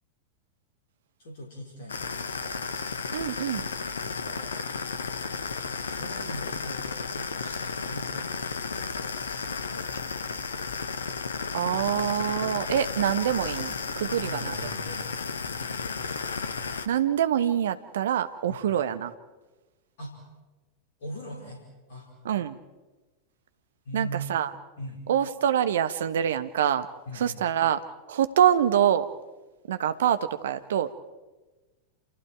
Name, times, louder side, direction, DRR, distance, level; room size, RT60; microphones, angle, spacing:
voice 1, 1.2-2.8 4.0-4.8 5.9-11.0 12.9-13.0 14.1-16.2 18.5-18.7 20.0-20.2 21.0-21.6 21.9-22.1 23.8-24.3 24.8-25.0 27.1-27.5, right 1 dB, 55° left, -1 dB, 4.8 m, -42 dB
sound 1, 1.9-16.9, left 5 dB, 70° left, 1.2 m, -33 dB
voice 2, 3.1-3.7 11.5-14.5 16.9-19.1 22.2-22.6 23.9-24.5 25.1-26.9 27.2-27.8 28.1-29.0 29.7-30.9, right 9 dB, 60° right, 11 dB, 1.2 m, -25 dB
28.5 x 28.5 x 4.7 m, 1.2 s
figure-of-eight pair, 90°, 0 cm